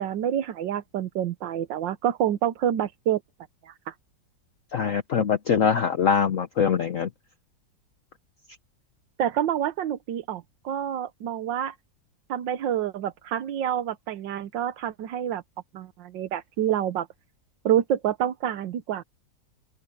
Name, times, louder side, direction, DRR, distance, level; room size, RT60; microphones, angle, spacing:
voice 1, 0.0-3.2 3.6-3.9 9.2-11.8 12.3-15.4 15.7-17.1 17.6-19.0, right 10 dB, 85° right, 1.6 m, -27 dB
voice 2, 4.7-7.1, left 7 dB, 55° left, 1.1 m, -23 dB
open air
omnidirectional pair, 1.9 m